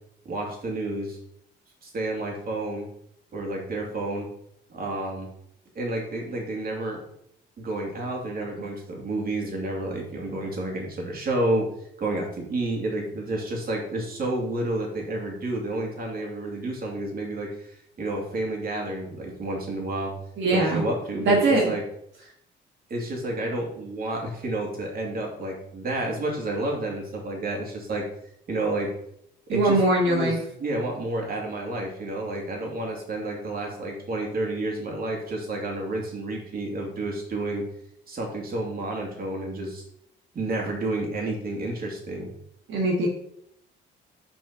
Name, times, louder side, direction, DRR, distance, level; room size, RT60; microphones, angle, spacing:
voice 1, 0.2-1.2 1.8-2.9 3.3-4.3 4.7-5.3 5.7-7.0 7.6-11.7 12.0-20.1 20.5-21.8 22.9-28.1 28.5-28.9 29.5-29.8 30.1-30.3 30.6-37.6 38.1-39.8 40.3-42.3, right 2 dB, 50° right, -1 dB, 2.8 m, -30 dB
voice 2, 20.4-20.8 21.2-21.7 29.5-30.4 42.7-43.1, right 2 dB, 70° right, -3 dB, 1.8 m, -21 dB
6.0 x 5.3 x 5.7 m, 0.73 s
cardioid pair, 90°, 20 cm